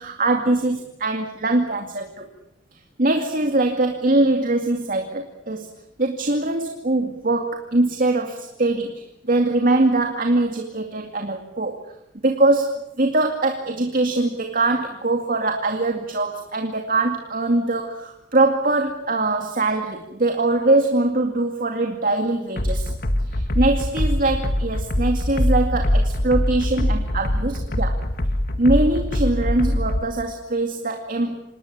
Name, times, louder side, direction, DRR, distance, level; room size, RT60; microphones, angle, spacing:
voice 1, 0.0-2.3 3.0-5.7 6.0-11.8 12.2-22.9 23.3-28.0 28.6-31.4, right 2 dB, 45° right, 4 dB, 2.3 m, -22 dB
sound 1, 22.6-30.1, left 1 dB, 50° left, 1.8 m, -23 dB
27.5 x 19.5 x 8.8 m, 0.82 s
head